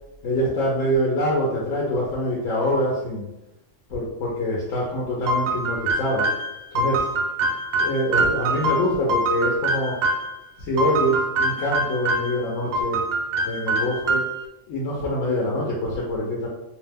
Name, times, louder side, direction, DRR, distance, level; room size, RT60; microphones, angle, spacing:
voice 1, 0.2-3.3 3.9-6.3 6.7-7.1 7.8-10.0 10.6-13.0 13.4-14.2 14.7-16.5, equal, 90° left, -4 dB, 1.1 m, -25 dB
sound 1, 5.3-10.3 10.8-12.4 12.7-14.5, right 2 dB, 65° right, 0.7 m, -24 dB
2.7 x 2.1 x 3.3 m, 0.92 s
omnidirectional pair, 1.3 m